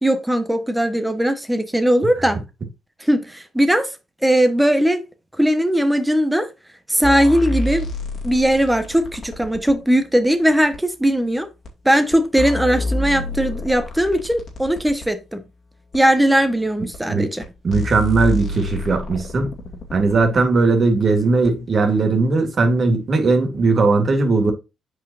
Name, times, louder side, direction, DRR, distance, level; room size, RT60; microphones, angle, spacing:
voice 1, 0.0-2.4 3.0-3.9 4.2-5.0 5.4-6.5 6.9-7.9 8.2-11.5 11.8-15.4 15.9-17.4, equal, 5° right, 1.3 m, -19 dB
sound 1, 7.0-9.8 10.7-10.8 11.6-11.7 12.1-15.1 15.9-16.0 16.9-17.0 17.4-17.5 17.7-20.4 21.4-21.5, left 2 dB, 60° left, 2.4 m, -28 dB
voice 2, 17.6-19.5 19.9-24.5, right 3 dB, 45° right, 2.3 m, -18 dB
8.1 x 4.9 x 2.7 m
supercardioid pair, 60°, 0 cm